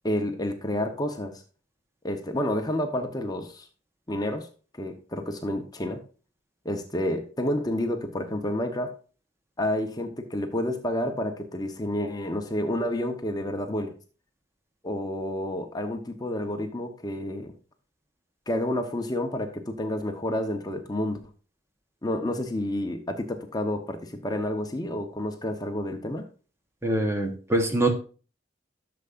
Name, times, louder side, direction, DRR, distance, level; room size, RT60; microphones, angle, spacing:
voice 1, 0.0-1.4 2.0-3.7 4.1-4.5 4.8-6.0 6.6-8.9 9.6-13.9 14.8-17.5 18.5-21.2 22.0-26.2, left 1 dB, 20° left, 5 dB, 0.9 m, -29 dB
voice 2, 26.8-27.9, right 1 dB, 15° right, 6 dB, 1.0 m, -24 dB
12.0 x 6.8 x 2.5 m, 0.37 s
head